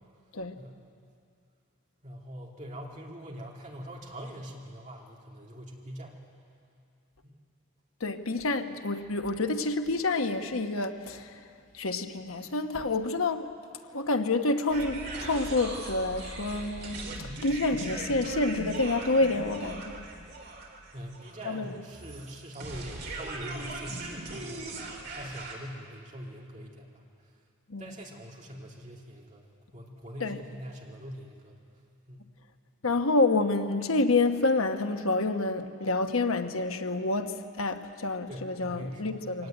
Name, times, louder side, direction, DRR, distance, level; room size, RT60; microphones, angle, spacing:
voice 1, 2.0-6.2 7.3-7.4 20.9-27.0 27.8-31.6 32.1-32.2 38.3-39.5, equal, 35° right, -2 dB, 3.1 m, -43 dB
voice 2, 8.0-11.3 11.7-13.5 13.9-17.0 17.4-20.1 21.4-21.7 27.7-27.9 30.2-30.4 32.8-39.5, left 2 dB, 90° left, 7 dB, 1.2 m, -28 dB
sound 1, 14.7-25.5, right 2 dB, 50° right, 3.5 m, -39 dB
23.5 x 18.0 x 9.3 m, 2.4 s
head